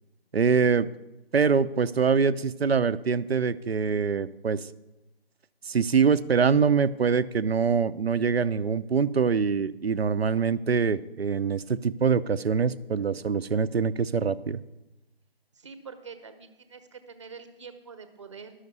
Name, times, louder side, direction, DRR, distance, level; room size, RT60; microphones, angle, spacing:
voice 1, 0.3-0.9 1.3-4.7 5.7-14.6, right 6 dB, 75° right, 15 dB, 0.7 m, -24 dB
voice 2, 15.5-18.5, right 5 dB, 30° right, 9 dB, 0.9 m, -45 dB
11.0 x 6.5 x 8.0 m, 0.99 s
figure-of-eight pair, 160°, 31 cm